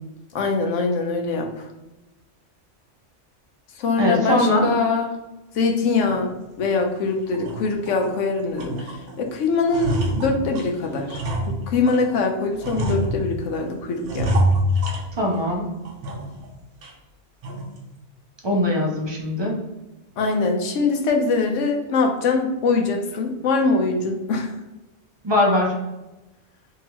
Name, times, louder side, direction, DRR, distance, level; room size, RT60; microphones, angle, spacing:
voice 1, 0.3-1.7 3.8-5.1 5.5-14.4 20.2-24.5, left 4 dB, 85° left, 3 dB, 0.9 m, -23 dB
voice 2, 4.0-4.7 15.2-15.7 18.4-19.6 25.2-25.7, left 1 dB, 30° right, -1 dB, 0.5 m, -21 dB
sound 1, 6.1-6.2 6.7-6.8 7.3-8.2 8.6-9.2 9.5-12.1 12.6-13.6 14.0-15.5 15.8-16.5 16.8-16.9 17.4-17.8, equal, 55° right, 0.8 m, -26 dB
3.8 x 2.8 x 2.9 m, 1.0 s
omnidirectional pair, 1.2 m